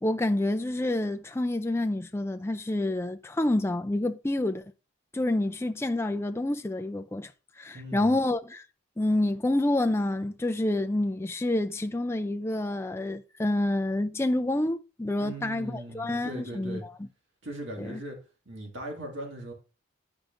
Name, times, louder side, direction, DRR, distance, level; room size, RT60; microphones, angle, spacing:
voice 1, 0.0-4.6 5.1-7.3 7.6-8.6 9.0-16.8 17.8-18.0, left 1 dB, 10° left, 0.4 m, -28 dB
voice 2, 7.7-8.2 15.2-16.8 17.4-18.2 18.5-19.5, right 1 dB, 60° right, 2.0 m, -39 dB
10.5 x 4.9 x 2.6 m
head